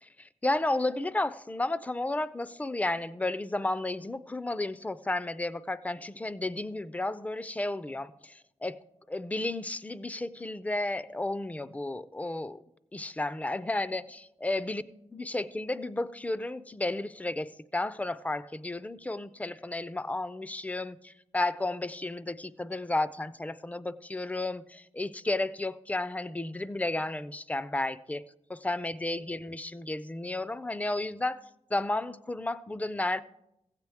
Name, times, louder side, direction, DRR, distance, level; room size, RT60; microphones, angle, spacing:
voice 1, 0.0-8.8 9.1-12.6 12.9-14.8 15.1-28.2 28.5-31.4 31.7-33.2, left 2 dB, 10° left, 0.3 m, -32 dB
15.5 x 8.1 x 3.5 m
wide cardioid pair, 110°, 12 cm